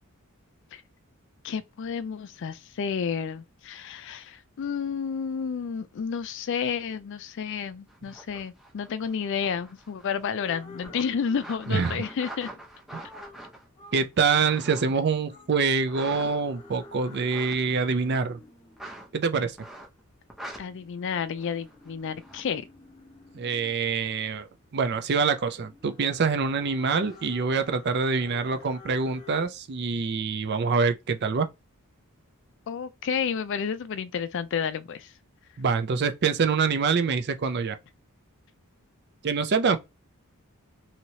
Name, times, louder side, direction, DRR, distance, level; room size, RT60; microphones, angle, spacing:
voice 1, 1.4-12.5 20.6-22.6 32.7-35.1, left 6 dB, 55° left, 0.4 m, -31 dB
sound 1, 7.9-10.4 10.8-15.1 15.8-16.7 17.2-17.6 18.8-19.1 19.6-20.0 20.3-20.6 21.4-22.4 26.9-27.3, right 1 dB, ahead, 0.7 m, -44 dB
sound 2, 10.4-29.5, left 3 dB, 30° left, 1.0 m, -51 dB
voice 2, 11.7-12.0 13.9-18.4 19.1-19.6 23.3-24.5 24.7-31.5 35.6-37.8 39.2-39.8, right 5 dB, 50° right, 0.5 m, -25 dB
3.0 x 2.8 x 2.7 m
head